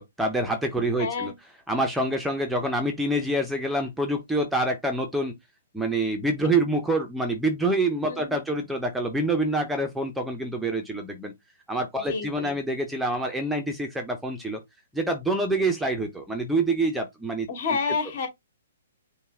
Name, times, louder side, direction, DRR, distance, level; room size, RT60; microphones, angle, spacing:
voice 1, 0.0-1.3 1.7-5.3 5.7-11.3 11.7-14.6 14.9-17.5, right 2 dB, 5° right, 0.7 m, -26 dB
voice 2, 1.0-1.3 8.1-8.4 12.1-12.6 17.5-18.3, left 5 dB, 50° left, 2.4 m, -29 dB
5.4 x 2.3 x 3.6 m
hypercardioid pair, 140°, 0 cm